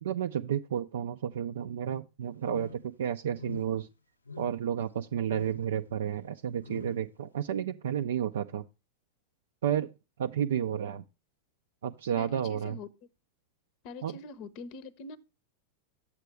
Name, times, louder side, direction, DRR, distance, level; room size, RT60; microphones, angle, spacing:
voice 1, 0.0-3.9 4.4-8.7 9.6-9.9 10.2-11.0 11.8-12.8 14.0-14.2, right 9 dB, 60° right, 0.4 m, -31 dB
sound 1, 2.4-2.9 3.4-3.8 4.2-4.7 5.3-5.7 6.6-7.1, left 5 dB, 80° left, 0.6 m, -45 dB
voice 2, 12.2-12.9 13.8-15.2, left 3 dB, 40° left, 0.7 m, -44 dB
8.3 x 7.5 x 3.3 m
figure-of-eight pair, 90°, 0 cm